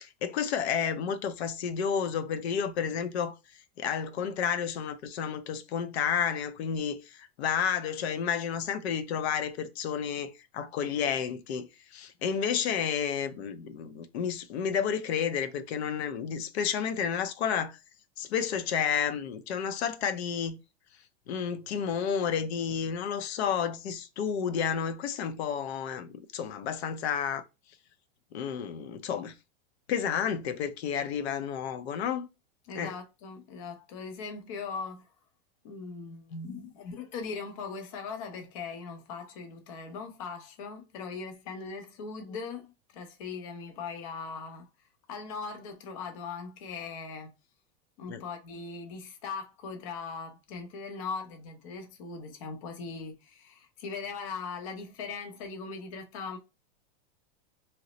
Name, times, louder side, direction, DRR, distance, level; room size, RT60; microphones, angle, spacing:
voice 1, 0.0-3.4 3.8-17.8 18.2-20.6 21.3-27.4 28.3-29.4 29.9-32.3 32.7-32.9 48.1-48.2, left 7 dB, 90° left, 0.6 m, -31 dB
voice 2, 32.7-35.1 35.6-44.7 45.1-47.3 48.0-56.4, left 5 dB, 35° left, 0.4 m, -40 dB
2.9 x 2.0 x 3.8 m
supercardioid pair, 180°, 31 cm